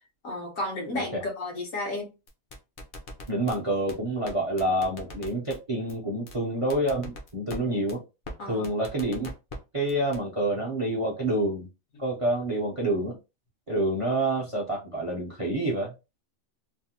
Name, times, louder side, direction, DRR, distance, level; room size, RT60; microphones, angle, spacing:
voice 1, 0.2-2.1 8.4-8.7 11.9-12.0, left 2 dB, 75° left, 1.4 m, -33 dB
sound 1, 2.3-3.6 3.9-4.0 4.3-4.4 4.6-5.6 5.9-6.0 6.3-6.4 6.7-7.6 7.9-8.0 8.3-8.4 8.6-9.6 9.9-10.2, left 1 dB, 50° left, 0.7 m, -40 dB
voice 2, 3.3-8.0 8.5-9.3 9.7-11.7 12.0-13.2 13.7-15.9, right 1 dB, 35° right, 0.6 m, -28 dB
3.2 x 2.1 x 2.8 m
omnidirectional pair, 1.4 m